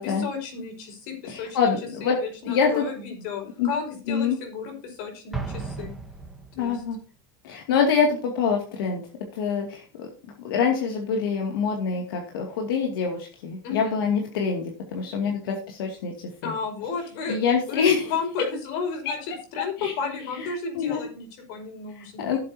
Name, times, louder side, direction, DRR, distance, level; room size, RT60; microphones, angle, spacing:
voice 1, 0.0-1.7 2.0-5.9 6.6-6.8 13.6-14.0 16.4-22.3, left 5 dB, 55° left, 3 dB, 5.1 m, -33 dB
voice 2, 1.3-2.2 2.5-2.9 3.6-3.7 4.1-4.4 6.6-7.0 7.4-9.0 9.3-10.1 10.4-16.1 16.4-16.5 17.3-18.1 19.1-19.2 19.8-19.9 20.8-21.1 22.2-22.4, left 6 dB, 85° left, 1 dB, 2.4 m, -25 dB
Explosion, 5.3-6.9, right 4 dB, ahead, 1.4 m, -35 dB
16.5 x 7.7 x 2.8 m, 0.39 s
supercardioid pair, 165°, 11 cm